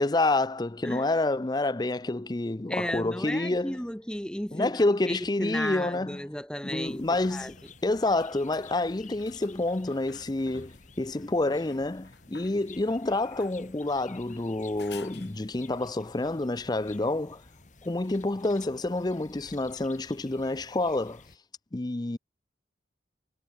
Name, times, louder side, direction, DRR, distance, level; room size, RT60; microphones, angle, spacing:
voice 1, 0.0-3.8 4.5-6.2 6.6-7.6 7.8-17.4 17.8-21.2 21.7-22.2, left 2 dB, 20° left, 0.5 m, -28 dB
voice 2, 2.7-4.7 5.0-7.5, equal, 5° left, 0.9 m, -34 dB
sound 1, 5.2-5.3 6.6-15.8 19.2-19.3, left 4 dB, 65° left, 3.2 m, -53 dB
sound 2, 6.8-21.4, left 4 dB, 40° left, 2.1 m, -53 dB
head